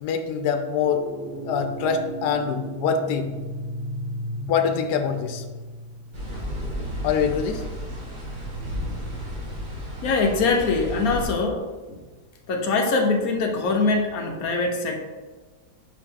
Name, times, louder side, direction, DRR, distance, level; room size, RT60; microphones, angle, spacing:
voice 1, 0.0-1.0 1.5-3.3 4.5-5.4 7.0-7.6, left 6 dB, 85° left, 6 dB, 1.2 m, -24 dB
sound 1, 0.8-7.5, right 1 dB, 65° right, 1.3 m, -35 dB
sound 2, 6.1-11.3, equal, 90° right, 2.1 m, -33 dB
voice 2, 10.0-12.0 12.5-15.0, left 3 dB, 70° left, 2 dB, 1.2 m, -23 dB
5.6 x 4.8 x 3.7 m, 1.3 s
omnidirectional pair, 1.7 m